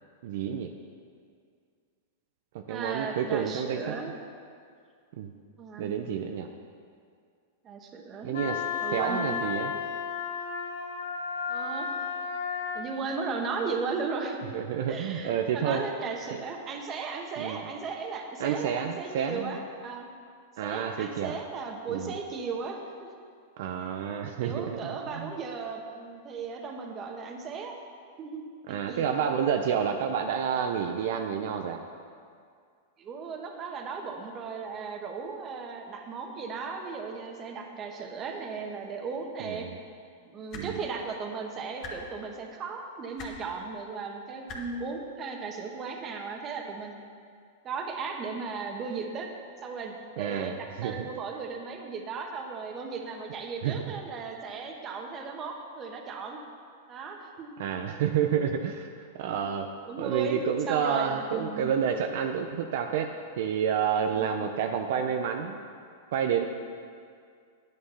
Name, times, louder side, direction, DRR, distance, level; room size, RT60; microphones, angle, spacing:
voice 1, 0.2-0.7 2.7-3.9 5.2-5.3 5.8-6.5 8.2-8.6 8.9-9.7 14.5-15.8 16.3-16.4 17.4-17.6 18.4-19.6 20.6-21.4 21.9-22.2 23.6-24.8 25.1-25.3 28.7-31.8 39.4-39.6 40.5-40.8 50.2-51.1 53.6-53.8 57.6-58.9 59.2-59.7 60.0-63.1 63.4-65.6 66.1-66.5, right 8 dB, 65° right, 5 dB, 0.7 m, -29 dB
voice 2, 2.7-4.2 5.6-5.9 7.6-8.4 8.8-9.3 11.5-11.9 12.7-14.4 14.9-20.1 20.6-23.1 24.4-27.8 28.2-29.2 33.0-39.7 40.2-47.0 47.6-49.3 49.6-56.4 56.9-57.6 59.3-59.4 59.9-60.4 60.7-61.7 64.1-64.3, right 4 dB, 30° right, 2 dB, 1.4 m, -36 dB
Wind instrument woodwind instrument, 8.3-12.9, left 5 dB, 85° left, 1.3 m, -33 dB
sound 1, 40.5-40.7 41.8-41.9 43.2-43.3 44.5-44.6 45.8-45.9, left 4 dB, 35° left, 1.8 m, -40 dB
9.8 x 8.8 x 5.7 m, 2.2 s
hypercardioid pair, 130°, 0 cm